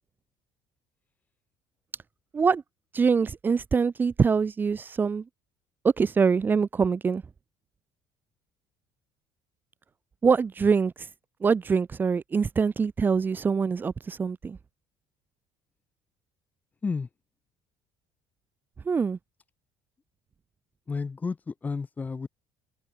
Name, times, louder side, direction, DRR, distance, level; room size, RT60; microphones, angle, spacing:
voice 1, 2.9-5.2 5.8-7.2 10.2-11.1 11.4-14.6 18.8-19.2, right 5 dB, 20° right, 3.2 m, -24 dB
voice 2, 20.9-22.3, left 4 dB, 15° left, 3.8 m, -31 dB
open air
cardioid pair, 170°, 10 cm